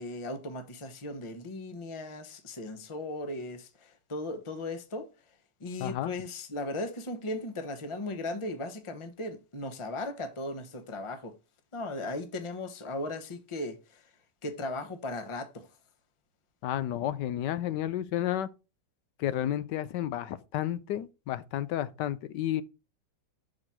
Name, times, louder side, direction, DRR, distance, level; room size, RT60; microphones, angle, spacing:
voice 1, 0.0-5.1 5.6-11.3 11.7-14.0 14.4-15.7, left 2 dB, 25° left, 0.8 m, -37 dB
voice 2, 5.8-6.1 16.6-18.5 19.2-22.6, left 12 dB, 80° left, 1.2 m, -31 dB
6.2 x 4.9 x 5.7 m
omnidirectional pair, 1.9 m